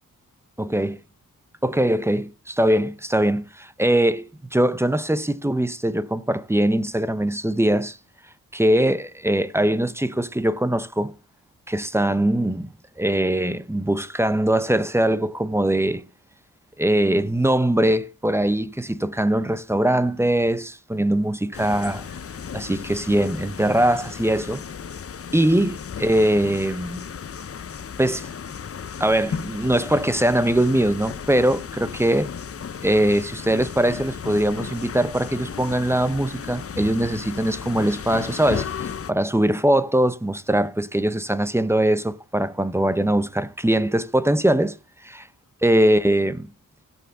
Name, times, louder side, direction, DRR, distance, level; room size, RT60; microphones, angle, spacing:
voice 1, 0.6-1.0 1.6-8.0 8.5-11.1 11.7-12.7 13.0-16.0 16.8-22.1 22.5-24.6 25.3-27.0 28.0-28.3 29.0-32.3 32.8-44.8 45.0-45.2 45.6-46.5, right 1 dB, 5° right, 0.8 m, -21 dB
sound 1, 21.5-39.1, left 7 dB, 40° left, 0.7 m, -35 dB
17.5 x 7.0 x 3.4 m
cardioid pair, 65°, 35 cm